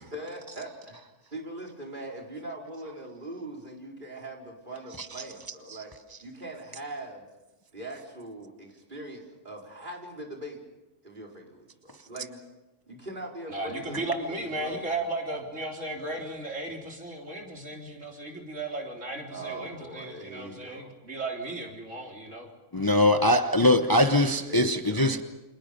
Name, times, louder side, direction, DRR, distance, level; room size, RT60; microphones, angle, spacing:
voice 1, 0.1-1.0 1.3-5.9 6.2-7.3 7.7-10.6 11.0-12.4 12.9-15.0 19.3-20.9 24.5-25.1, right 1 dB, 40° right, 4.8 m, -41 dB
voice 2, 13.5-22.5, right 2 dB, 80° right, 4.1 m, -35 dB
voice 3, 22.7-25.2, left 1 dB, 20° left, 0.9 m, -22 dB
29.5 x 27.0 x 5.3 m
omnidirectional pair, 1.3 m